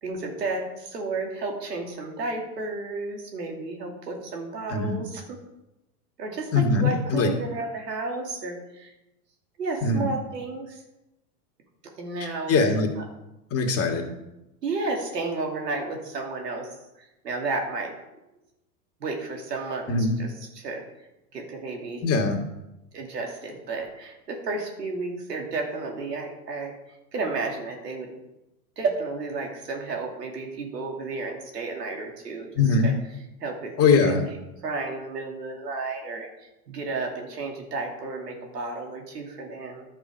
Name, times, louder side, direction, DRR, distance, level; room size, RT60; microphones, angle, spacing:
voice 1, 0.0-5.4 6.2-8.9 9.6-10.8 12.0-12.5 14.6-16.7 17.0-17.9 19.0-20.8 21.3-22.0 22.9-26.7 27.1-28.1 28.8-32.5 32.8-32.9 33.4-34.2 34.6-36.3 36.7-39.9, right 3 dB, 90° right, 1 dB, 2.6 m, -32 dB
voice 2, 6.5-7.3 9.8-10.1 12.2-12.9 13.5-14.1 19.9-20.1 22.0-22.4 32.6-32.9 33.8-34.2, left 4 dB, 30° left, 2 dB, 1.9 m, -22 dB
11.5 x 6.2 x 5.3 m, 0.94 s
hypercardioid pair, 110°, 47 cm